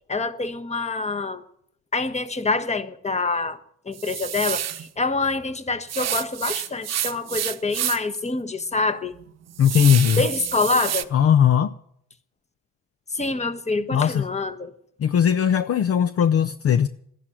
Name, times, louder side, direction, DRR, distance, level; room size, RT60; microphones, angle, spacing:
voice 1, 0.1-1.4 1.9-3.6 3.9-9.1 10.2-11.1 13.1-14.7, left 3 dB, 20° left, 1.3 m, -26 dB
sound 1, 3.9-4.9 5.9-8.2 8.6-8.7 9.1-11.0, right 11 dB, 60° right, 0.9 m, -29 dB
voice 2, 9.6-10.2 11.1-11.7 13.9-14.3 15.0-16.9, left 8 dB, 50° left, 0.6 m, -19 dB
13.0 x 11.0 x 8.8 m
cardioid pair, 90°, 30 cm